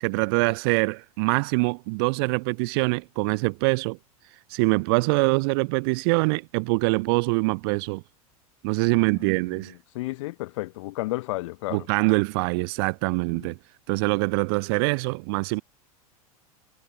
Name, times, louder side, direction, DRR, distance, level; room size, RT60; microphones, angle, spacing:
voice 1, 0.0-4.0 4.5-8.0 8.6-9.7 11.7-13.6 13.9-15.6, right 30 dB, 40° right, 0.4 m, -24 dB
voice 2, 8.9-11.9 13.3-13.5, left 20 dB, 55° left, 4.1 m, -33 dB
figure-of-eight pair, 90°, 19 cm